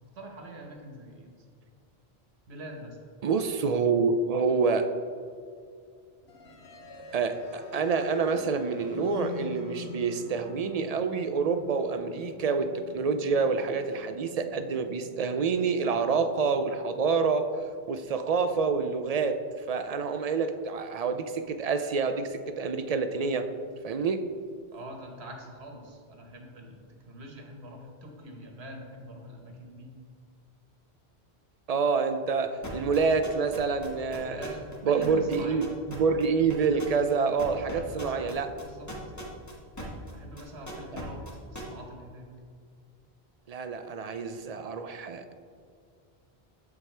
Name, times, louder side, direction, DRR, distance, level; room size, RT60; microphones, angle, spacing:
voice 1, 0.1-1.4 2.5-3.1 24.7-29.9 34.2-35.8 37.6-38.9 40.1-41.2 41.5-42.3, right 1 dB, 85° right, 2 dB, 1.5 m, -44 dB
voice 2, 3.2-4.9 7.1-17.5 17.9-23.5 23.8-24.3 31.7-34.5 34.8-38.5 43.5-45.3, right 5 dB, 55° right, 8 dB, 0.4 m, -27 dB
sound 1, 6.3-18.2, left 3 dB, 85° left, 1.1 m, -45 dB
sound 2, 32.6-34.8 35.0-40.1 40.4-41.6, equal, 15° left, 1.4 m, -40 dB
14.0 x 4.8 x 3.3 m, 2.3 s
omnidirectional pair, 1.1 m